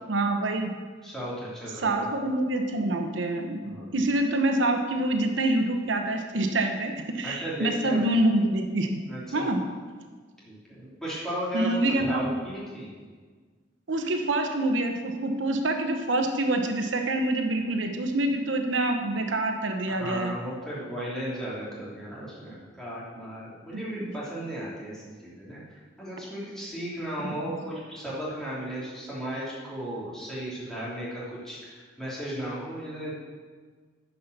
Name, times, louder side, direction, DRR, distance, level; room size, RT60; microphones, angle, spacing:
voice 1, 0.1-0.7 1.8-9.0 9.3-9.7 11.5-12.3 13.9-20.4 23.7-24.1 27.2-27.5, right 1 dB, 85° right, 5 dB, 0.9 m, -26 dB
voice 2, 1.0-2.1 3.6-3.9 7.2-8.0 9.1-9.7 10.5-11.8 12.1-12.9 19.9-25.6 26.0-33.1, right 1 dB, 5° left, -8 dB, 3.2 m, -35 dB
10.0 x 5.5 x 6.7 m, 1.5 s
head